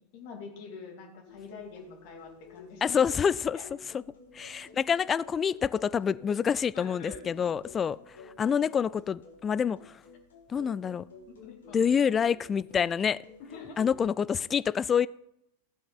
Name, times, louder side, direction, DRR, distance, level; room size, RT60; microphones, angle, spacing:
voice 1, 0.0-3.1 3.5-3.6 6.7-7.3 11.3-11.9 13.4-13.8, left 5 dB, 45° left, 2.5 m, -45 dB
sound 1, 1.3-13.9, left 4 dB, 65° left, 2.5 m, -52 dB
voice 2, 2.8-3.6 3.9-4.0 4.3-10.0 10.5-11.0 11.7-13.2 13.8-15.1, left 7 dB, 20° left, 0.4 m, -27 dB
15.5 x 7.8 x 4.0 m
figure-of-eight pair, 90°, 0 cm